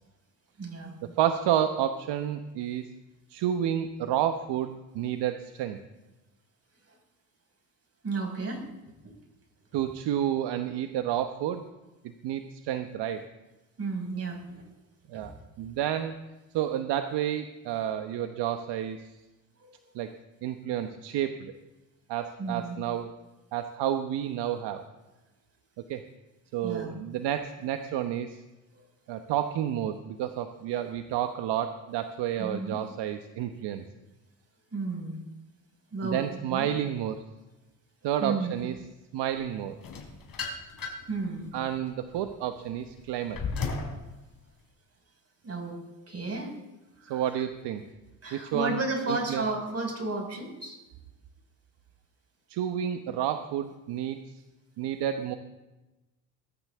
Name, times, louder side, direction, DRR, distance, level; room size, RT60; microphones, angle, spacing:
voice 1, 0.6-0.9 8.0-8.7 13.8-14.7 15.1-15.3 19.6-19.7 22.4-22.8 26.6-26.9 32.4-32.8 34.7-35.2 35.9-36.2 36.5-36.7 38.2-38.5 41.1-41.5 45.4-45.8 46.1-46.5 47.0-47.2 48.2-50.8, right 3 dB, 30° right, 2 dB, 5.6 m, -33 dB
voice 2, 1.2-2.9 3.3-5.8 9.7-11.7 12.2-13.2 15.1-16.1 16.5-19.0 19.9-20.1 20.4-21.5 22.1-23.1 23.5-24.8 25.9-26.0 26.5-28.4 29.1-33.8 36.0-37.2 38.0-38.7 39.1-39.8 41.5-43.4 47.1-47.8 48.3-48.8 49.1-49.4 52.5-54.2 54.8-55.4, right 10 dB, 65° right, 7 dB, 1.2 m, -30 dB
sound 1, 39.8-41.2 41.7-44.0, left 4 dB, 50° left, 4.7 m, -35 dB
22.0 x 13.5 x 3.7 m, 1.1 s
hypercardioid pair, 65°, 45 cm